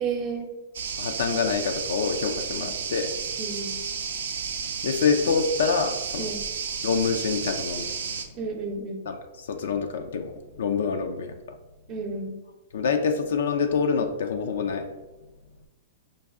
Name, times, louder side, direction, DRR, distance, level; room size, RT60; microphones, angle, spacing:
voice 1, 0.0-0.5 3.4-3.7 6.2-6.4 8.3-9.1 11.9-12.3, right 4 dB, 35° right, 4 dB, 0.7 m, -31 dB
sound 1, 0.7-8.2, right 6 dB, 80° right, 0.5 m, -32 dB
voice 2, 1.0-3.1 4.8-6.3 6.8-7.9 9.1-11.6 12.7-14.9, left 5 dB, 75° left, 6 dB, 0.4 m, -26 dB
5.1 x 2.3 x 3.5 m, 1.1 s
hypercardioid pair, 125°, 0 cm